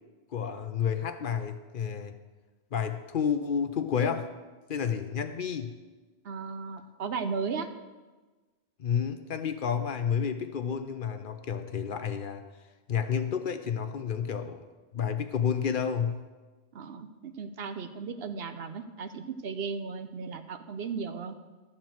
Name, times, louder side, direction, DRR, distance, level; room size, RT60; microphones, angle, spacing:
voice 1, 0.3-2.1 2.7-4.3 4.7-5.8 8.8-12.4 12.9-14.6 14.9-16.2, left 7 dB, 60° left, 8 dB, 0.8 m, -30 dB
voice 2, 6.2-7.7 16.7-21.4, right 5 dB, 70° right, 9 dB, 0.9 m, -36 dB
12.5 x 4.4 x 7.5 m, 1.3 s
omnidirectional pair, 1.1 m